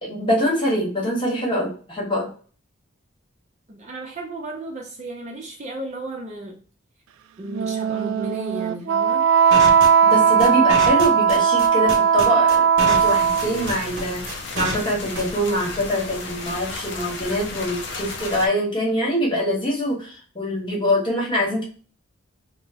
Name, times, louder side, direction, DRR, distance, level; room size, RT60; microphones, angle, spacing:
voice 1, 0.0-2.3 10.0-21.6, equal, 25° left, -3 dB, 1.1 m, -24 dB
voice 2, 3.7-6.6 7.4-9.2, right 2 dB, 35° right, 0 dB, 0.5 m, -34 dB
Wind instrument woodwind instrument, 7.5-13.7, right 7 dB, 90° right, 0.3 m, -18 dB
sound 1, 9.5-15.5, right 1 dB, 55° right, 0.9 m, -28 dB
sound 2, 12.9-18.5, left 3 dB, 60° left, 0.4 m, -34 dB
2.9 x 2.0 x 3.5 m, 0.40 s
head